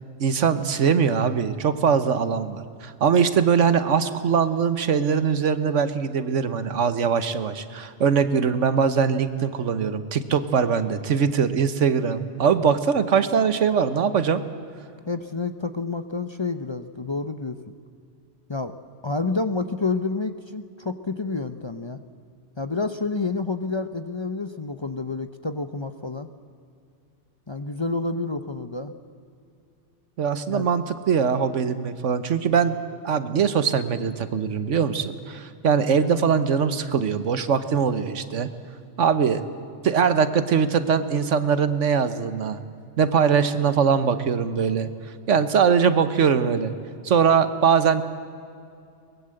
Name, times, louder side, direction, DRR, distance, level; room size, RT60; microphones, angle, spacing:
voice 1, 0.2-14.4 30.2-32.8 33.0-38.5 39.0-39.4 39.8-42.6 43.0-44.9 45.3-46.8 47.0-48.0, right 6 dB, 80° right, 11 dB, 1.4 m, -22 dB
voice 2, 15.1-17.6 18.5-18.8 19.0-22.0 22.6-26.3 27.5-28.9 30.5-30.7, left 3 dB, 30° left, 9 dB, 0.6 m, -29 dB
23.0 x 20.5 x 7.8 m, 2.4 s
omnidirectional pair, 1.2 m